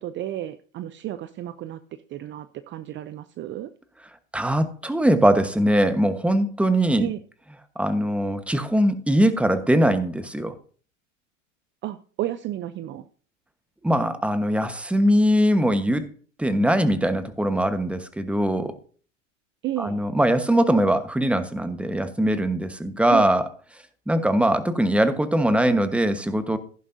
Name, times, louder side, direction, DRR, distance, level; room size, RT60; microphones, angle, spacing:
voice 1, 0.0-1.8 2.1-3.7 7.0-7.2 11.8-13.0 19.6-20.0 23.1-23.3, right 13 dB, 30° right, 13 dB, 0.6 m, -32 dB
voice 2, 4.3-7.1 7.8-10.6 13.8-16.1 16.4-18.8 19.8-23.4 24.1-26.6, right 1 dB, 5° right, 10 dB, 1.2 m, -21 dB
15.0 x 11.0 x 2.7 m, 0.42 s
hypercardioid pair, 100°, 38 cm